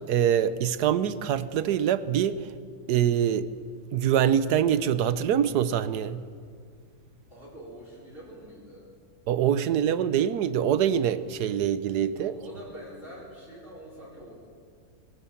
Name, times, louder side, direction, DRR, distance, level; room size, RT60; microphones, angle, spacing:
voice 1, 0.1-2.4 2.9-3.5 3.9-6.2 9.3-12.3, right 9 dB, 90° right, 14 dB, 1.4 m, -24 dB
voice 2, 7.3-8.9 12.1-14.3, right 1 dB, 35° right, -4 dB, 4.9 m, -45 dB
21.5 x 17.5 x 7.2 m, 2.2 s
omnidirectional pair, 1.7 m